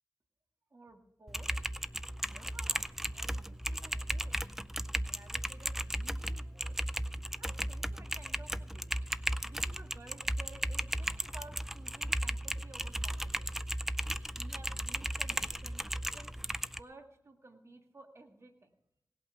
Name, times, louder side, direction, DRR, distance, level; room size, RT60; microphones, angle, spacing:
voice 1, 0.7-1.5 2.2-4.7 5.0-6.8 7.4-9.0 9.4-13.6 14.3-15.8 16.1-18.7, right 2 dB, 45° right, 4 dB, 2.0 m, -55 dB
Typing, 1.3-16.8, equal, 5° right, 0.5 m, -36 dB
18.0 x 8.6 x 5.8 m, 0.80 s
wide cardioid pair, 75°, 6 cm